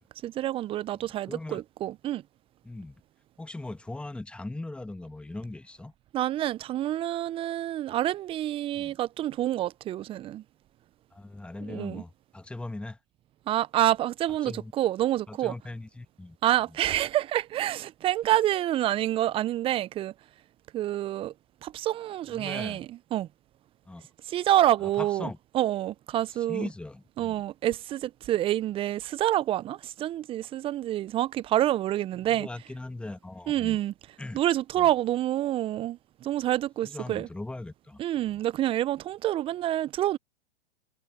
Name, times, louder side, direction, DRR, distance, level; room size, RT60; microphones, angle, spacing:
voice 1, 0.2-2.2 6.1-10.4 11.7-12.0 13.5-15.5 16.4-20.1 20.7-21.3 21.6-23.3 24.3-25.3 25.5-26.7 27.2-32.5 33.5-33.9 34.3-37.3 38.0-40.2, right 13 dB, 15° right, 0.8 m, -27 dB
voice 2, 1.0-1.6 2.6-3.0 3.4-5.9 8.7-8.9 11.1-13.0 14.4-14.7 15.3-16.4 22.3-22.8 23.8-24.0 24.8-25.4 26.3-27.4 32.2-33.8 34.2-34.4 34.8-34.9 36.8-38.0 38.3-38.4, left 2 dB, 5° left, 1.6 m, -39 dB
figure-of-eight pair, 120°, 32 cm